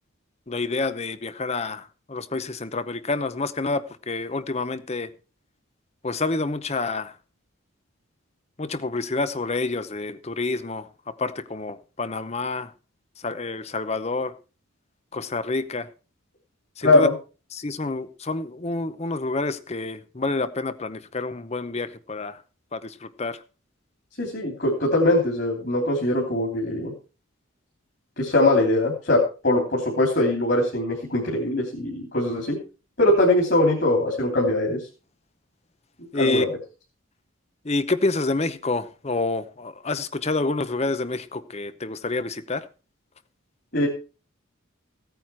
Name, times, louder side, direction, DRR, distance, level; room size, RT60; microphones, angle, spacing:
voice 1, 0.5-1.8 2.1-5.1 6.0-7.1 8.6-12.7 13.2-14.3 15.1-15.9 16.8-17.1 17.5-22.4 22.7-23.4 36.1-36.5 37.7-42.6, left 3 dB, 30° left, 0.7 m, -28 dB
voice 2, 24.2-26.9 28.2-32.6 33.0-34.9 36.1-36.5 43.7-43.9, left 1 dB, 50° left, 3.1 m, -21 dB
16.0 x 9.1 x 4.5 m
head